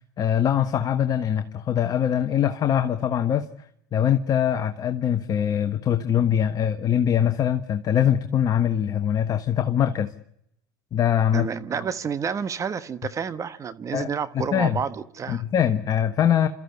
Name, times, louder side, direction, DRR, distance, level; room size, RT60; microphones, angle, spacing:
voice 1, 0.2-3.5 3.9-10.1 10.9-11.5 13.9-14.1 14.5-14.8 15.3-16.5, left 9 dB, 40° left, 8 dB, 1.3 m, -22 dB
voice 2, 11.3-15.4, right 6 dB, 30° right, 12 dB, 1.3 m, -29 dB
28.5 x 14.0 x 9.8 m, 0.75 s
hypercardioid pair, 80°, 10 cm